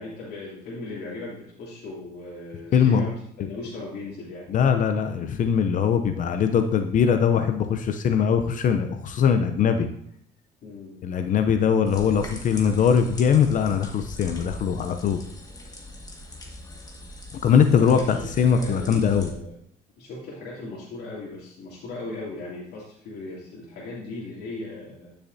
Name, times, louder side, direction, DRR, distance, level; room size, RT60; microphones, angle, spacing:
voice 1, 0.0-4.5 10.6-11.1 17.7-19.5 20.0-25.1, left 2 dB, 70° left, -7 dB, 2.8 m, -38 dB
voice 2, 2.7-3.1 4.5-9.9 11.0-15.2 17.4-19.3, left 7 dB, 50° left, 8 dB, 0.6 m, -21 dB
sound 1, 11.9-19.3, left 1 dB, 20° left, 1.7 m, -41 dB
10.5 x 6.7 x 2.7 m, 0.67 s
cardioid pair, 110°, 17 cm